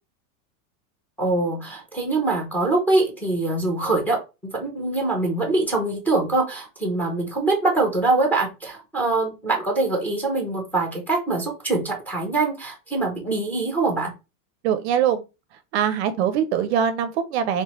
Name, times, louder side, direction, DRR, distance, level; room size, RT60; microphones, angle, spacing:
voice 1, 1.2-14.1, right 2 dB, 5° left, 0.5 m, -23 dB
voice 2, 14.6-15.2 15.7-17.6, right 9 dB, 50° right, 0.5 m, -22 dB
3.1 x 3.1 x 2.9 m
supercardioid pair, 165°, 43 cm